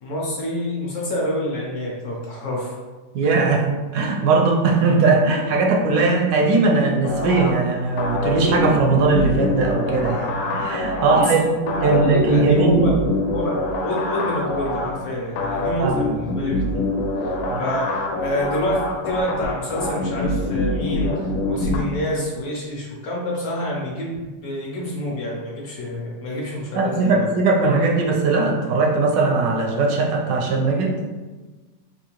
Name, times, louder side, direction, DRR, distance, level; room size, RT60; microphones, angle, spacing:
voice 1, 0.0-2.8 11.0-13.6 13.8-16.8 17.2-27.3, equal, 65° left, -3 dB, 1.0 m, -27 dB
voice 2, 3.1-3.7 3.9-11.4 11.8-12.8 15.8-16.0 17.4-17.6 26.7-31.0, right 3 dB, 85° right, 1 dB, 1.3 m, -19 dB
sound 1, 7.0-21.8, left 2 dB, 90° left, 1.3 m, -25 dB
3.6 x 2.7 x 2.9 m, 1.3 s
omnidirectional pair, 1.9 m